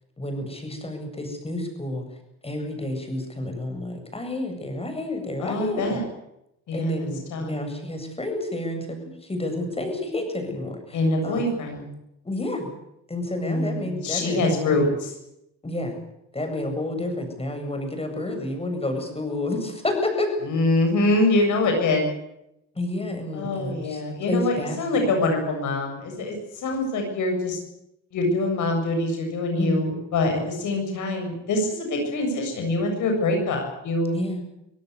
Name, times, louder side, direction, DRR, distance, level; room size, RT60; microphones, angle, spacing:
voice 1, 0.2-2.0 2.4-6.0 6.7-11.4 12.2-12.7 13.1-14.7 15.6-16.0 16.3-20.3 22.7-24.0 24.3-24.8 25.0-25.3 29.5-29.9 34.1-34.4, left 1 dB, 20° left, 5 dB, 8.0 m, -30 dB
voice 2, 5.4-6.0 6.7-7.5 10.9-11.9 13.4-15.1 20.4-22.1 23.3-27.6 28.1-34.2, left 2 dB, 75° left, 3 dB, 7.7 m, -24 dB
26.0 x 17.0 x 8.3 m, 0.82 s
cardioid pair, 90°, 30 cm